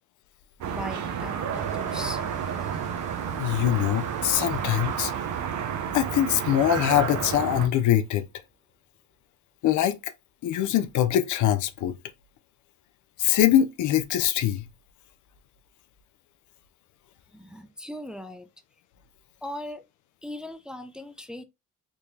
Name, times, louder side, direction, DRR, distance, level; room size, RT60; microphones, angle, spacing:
sound 1, 0.6-7.7, right 8 dB, 75° right, 0.7 m, -31 dB
voice 1, 0.7-2.7 17.3-18.5 19.4-19.8 20.2-21.4, left 1 dB, 5° right, 0.4 m, -39 dB
sound 2, 1.5-8.4, right 2 dB, 25° right, 1.3 m, -47 dB
voice 2, 3.4-5.1 5.9-8.3 9.6-10.0 10.4-11.9 13.2-14.6, left 11 dB, 75° left, 0.5 m, -23 dB
3.7 x 2.9 x 2.7 m
cardioid pair, 90°, 30 cm